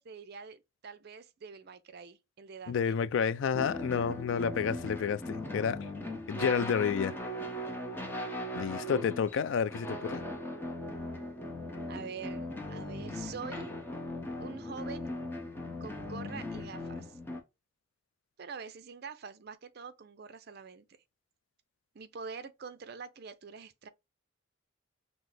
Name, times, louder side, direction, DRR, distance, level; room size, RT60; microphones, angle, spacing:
voice 1, 0.0-3.0 11.9-13.7 14.4-15.1 15.8-17.2 18.4-21.0 21.9-23.9, right 5 dB, 50° right, 0.5 m, -45 dB
voice 2, 2.7-5.8 6.3-7.1 8.5-10.2, left 7 dB, 70° left, 0.3 m, -30 dB
sound 1, 3.5-17.4, left 1 dB, 10° left, 0.6 m, -39 dB
5.9 x 2.0 x 3.2 m
head